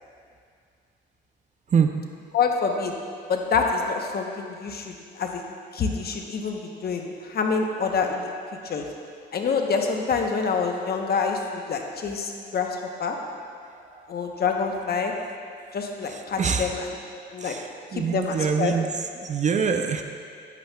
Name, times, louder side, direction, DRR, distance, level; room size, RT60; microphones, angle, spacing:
voice 1, 2.3-2.9 3.3-5.4 5.7-8.3 8.6-8.8 9.3-12.7 13.0-13.2 14.1-15.1 15.7-17.0 17.3-17.5 17.9-18.7, left 5 dB, 50° left, 3 dB, 0.9 m, -26 dB
voice 2, 16.1-16.7 17.4-18.9 19.2-20.0, right 6 dB, 35° right, 6 dB, 0.5 m, -25 dB
10.5 x 8.3 x 2.3 m, 2.2 s
cardioid pair, 90°, 20 cm